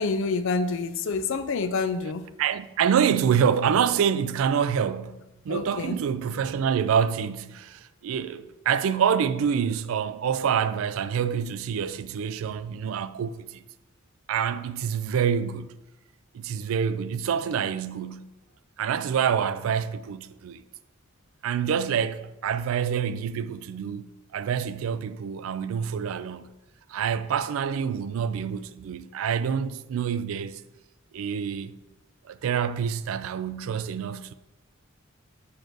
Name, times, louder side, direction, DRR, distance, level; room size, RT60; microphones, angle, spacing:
voice 1, 0.0-2.3 5.5-6.0, left 4 dB, 65° left, 0.4 m, -27 dB
voice 2, 2.4-13.6 14.3-15.7 16.3-18.3 18.8-20.6 21.4-26.5 26.9-30.6 31.1-31.8 32.3-34.3, right 7 dB, 70° right, 0.3 m, -27 dB
6.8 x 6.1 x 2.6 m
head